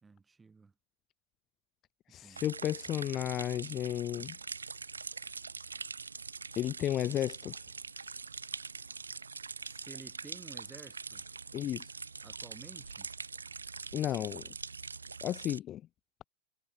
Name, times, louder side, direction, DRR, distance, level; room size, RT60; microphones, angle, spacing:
voice 1, 0.0-0.7 2.1-2.5 9.6-11.3 12.2-13.1, right 4 dB, 15° right, 4.3 m, -53 dB
voice 2, 2.1-4.4 6.6-7.6 11.5-11.9 13.9-14.4 15.2-15.8, left 12 dB, 30° left, 0.4 m, -33 dB
sound 1, 2.4-15.6, right 4 dB, 75° right, 0.5 m, -43 dB
figure-of-eight pair, 90°, 0 cm